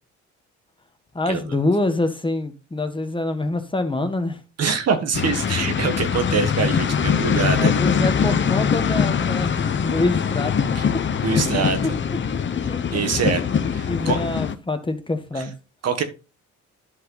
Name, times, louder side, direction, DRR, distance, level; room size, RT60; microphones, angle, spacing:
voice 1, 1.1-4.4 7.6-11.0 12.7-12.8 13.8-15.5, left 2 dB, 15° left, 1.3 m, -25 dB
voice 2, 4.6-7.7 10.7-10.9 11.2-12.0 12.9-13.4 13.7-14.2 15.4-15.5 15.8-16.0, right 5 dB, 55° right, 1.6 m, -24 dB
sound 1, 5.1-14.5, left 7 dB, 40° left, 0.9 m, -22 dB
11.0 x 5.4 x 4.0 m
cardioid pair, 90°, 30 cm